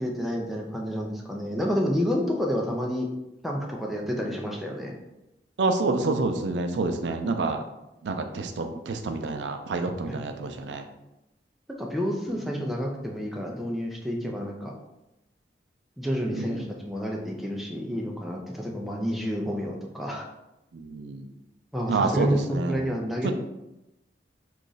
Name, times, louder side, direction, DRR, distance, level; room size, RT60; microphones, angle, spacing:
voice 1, 0.0-3.1 3.4-5.0 10.1-10.2 11.7-14.7 16.0-20.3 21.7-23.3, equal, ahead, -1 dB, 0.5 m, -29 dB
voice 2, 5.6-7.6 8.0-10.8 16.3-16.6 20.7-21.3 21.9-22.8 23.2-23.3, right 3 dB, 85° right, 5 dB, 0.4 m, -28 dB
3.0 x 2.5 x 3.9 m, 0.92 s
head